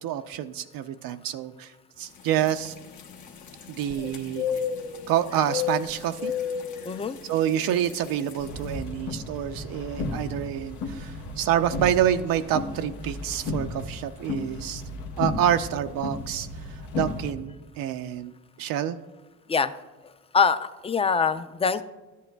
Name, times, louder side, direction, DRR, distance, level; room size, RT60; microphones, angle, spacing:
voice 1, 0.0-1.7 2.0-2.7 3.7-4.5 5.1-6.3 7.3-14.8 15.2-16.5 16.9-18.3 18.6-19.0, right 10 dB, 75° right, 8 dB, 0.5 m, -27 dB
sound 1, 2.1-8.7, left 7 dB, 55° left, 0.8 m, -34 dB
voice 2, 6.9-7.2 19.5-19.7 20.3-21.8, left 5 dB, 15° left, 12 dB, 0.4 m, -23 dB
sound 2, 8.4-17.3, left 2 dB, 85° left, 1.0 m, -34 dB
12.5 x 8.3 x 2.2 m, 1.2 s
supercardioid pair, 70°, 35 cm